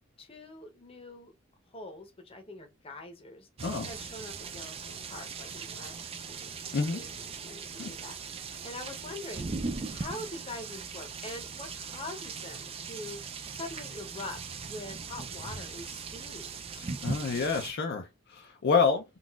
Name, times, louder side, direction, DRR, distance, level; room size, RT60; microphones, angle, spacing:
voice 1, 0.2-1.3 1.7-3.5 3.9-6.5 6.8-13.2 13.5-14.4 14.7-16.6, left 2 dB, 30° left, 0.8 m, -44 dB
sound 1, 3.6-17.7, right 5 dB, 30° right, 0.4 m, -39 dB
voice 2, 16.8-19.0, left 5 dB, 55° left, 0.5 m, -28 dB
3.8 x 2.4 x 2.3 m
head